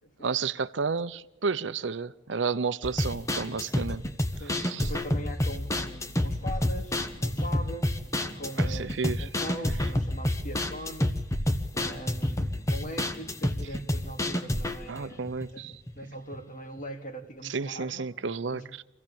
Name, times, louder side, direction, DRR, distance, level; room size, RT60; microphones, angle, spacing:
voice 1, 0.2-4.0 4.4-4.9 8.6-9.3 14.9-15.7 17.4-18.8, right 5 dB, 80° right, 0.7 m, -31 dB
sound 1, 2.8-16.0 16.3-16.4 16.8-16.9, left 1 dB, 15° left, 1.1 m, -29 dB
voice 2, 4.4-7.9 8.2-11.2 11.7-15.2 15.5-15.6 15.9-18.1 18.5-18.7, equal, 45° left, 2.5 m, -41 dB
25.5 x 16.0 x 8.7 m
head